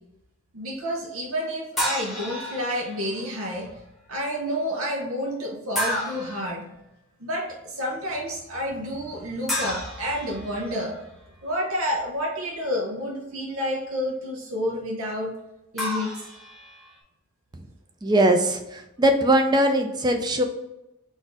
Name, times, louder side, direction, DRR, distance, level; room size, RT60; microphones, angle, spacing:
voice 1, 0.5-3.7 4.1-6.6 7.2-11.0 11.4-15.3 15.7-16.1, equal, 75° right, -1 dB, 0.8 m, -29 dB
sound 1, 1.8-3.1 5.7-6.5 9.5-11.0 15.8-17.0, equal, ahead, 1.1 m, -31 dB
voice 2, 18.0-20.4, right 1 dB, 20° right, 5 dB, 0.4 m, -21 dB
4.0 x 2.6 x 4.7 m, 0.90 s
head